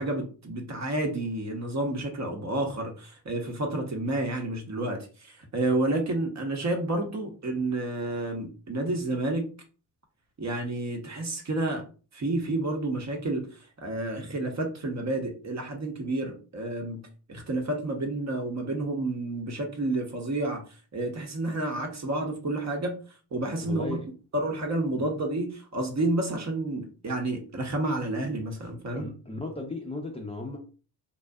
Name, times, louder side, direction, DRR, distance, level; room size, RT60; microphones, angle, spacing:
voice 1, 0.0-9.5 10.4-11.8 12.1-13.5 13.8-20.6 20.9-23.0 23.3-24.0 24.3-29.1, right 2 dB, 35° right, 0.9 m, -30 dB
voice 2, 23.6-24.1 25.0-25.1 28.9-30.6, left 2 dB, 15° left, 0.6 m, -35 dB
2.6 x 2.3 x 2.2 m
hypercardioid pair, 50°, 46 cm